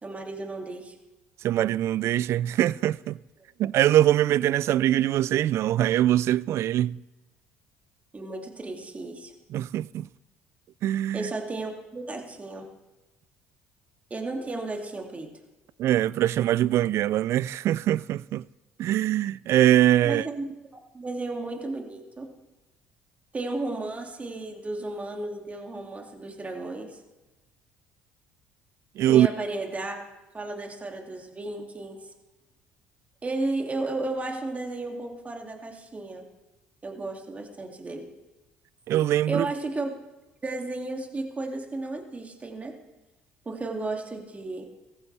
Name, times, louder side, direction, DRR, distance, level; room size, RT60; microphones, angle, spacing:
voice 1, 0.0-0.9 8.1-9.3 11.1-12.7 14.1-15.3 20.0-22.3 23.3-27.0 29.1-30.1 30.3-32.1 33.2-36.3 36.8-38.1 39.3-39.9 40.4-42.8 43.4-44.7, right 2 dB, 30° right, 2.5 m, -33 dB
voice 2, 1.4-3.2 3.6-7.0 9.5-10.1 10.8-11.3 15.8-18.4 18.8-20.3 29.0-29.3 38.9-39.5, right 13 dB, 60° right, 0.3 m, -23 dB
17.0 x 14.5 x 3.4 m
hypercardioid pair, 60°, 5 cm